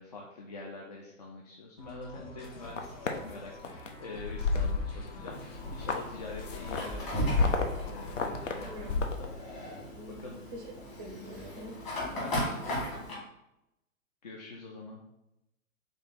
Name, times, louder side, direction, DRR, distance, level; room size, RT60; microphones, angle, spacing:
voice 1, 0.0-9.6 10.1-10.5 12.1-13.0 14.2-15.0, left 3 dB, 35° left, -1 dB, 0.4 m, -45 dB
sound 1, 1.8-9.0, left 1 dB, 50° left, 1.2 m, -48 dB
sound 2, 2.4-3.2 3.6-3.9 4.2-5.3 5.6-9.2, left 4 dB, 65° left, 0.7 m, -31 dB
Fire, 5.3-13.1, equal, 15° left, 1.6 m, -37 dB
voice 2, 8.6-9.0 9.9-10.2 10.5-10.6 10.9-11.8, equal, 20° right, 2 dB, 0.5 m, -44 dB
3.3 x 3.3 x 4.0 m, 0.89 s
figure-of-eight pair, 110°, 41 cm